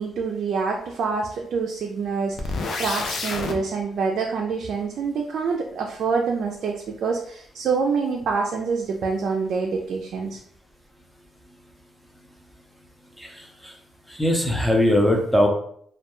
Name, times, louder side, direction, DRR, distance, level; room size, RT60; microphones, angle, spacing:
voice 1, 0.0-10.4, right 5 dB, 65° right, 1 dB, 0.3 m, -26 dB
sound 1, 2.4-3.6, left 3 dB, 60° left, 0.4 m, -28 dB
voice 2, 13.2-13.8 14.1-15.5, left 1 dB, ahead, 2 dB, 0.6 m, -21 dB
2.2 x 2.1 x 2.9 m, 0.63 s
cardioid pair, 90°, 0 cm